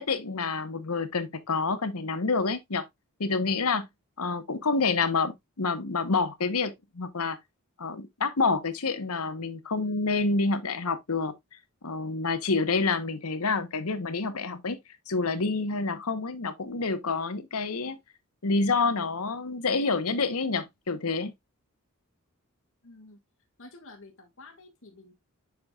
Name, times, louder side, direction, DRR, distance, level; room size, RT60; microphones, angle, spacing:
voice 1, 0.0-2.8 3.2-3.9 4.2-7.4 7.8-11.3 11.8-14.8 15.1-18.0 18.4-21.3, left 4 dB, 80° left, 1.0 m, -28 dB
voice 2, 22.8-23.2 23.6-25.2, left 2 dB, 60° left, 2.0 m, -50 dB
8.5 x 5.8 x 2.3 m
head